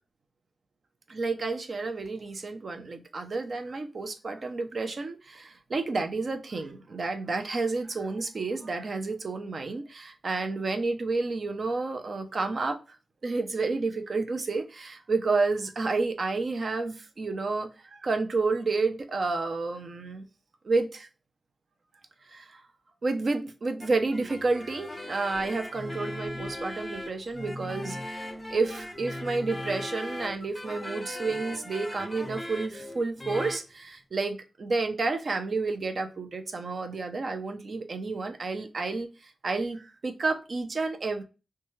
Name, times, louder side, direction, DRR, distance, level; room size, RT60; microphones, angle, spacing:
voice 1, 1.1-12.8 13.2-20.2 20.6-21.1 22.3-22.6 23.0-41.2, right 3 dB, 55° right, 0.5 m, -30 dB
sound 1, 23.8-33.7, left 1 dB, 15° left, 0.5 m, -38 dB
3.0 x 2.3 x 2.7 m
cardioid pair, 75°, 0 cm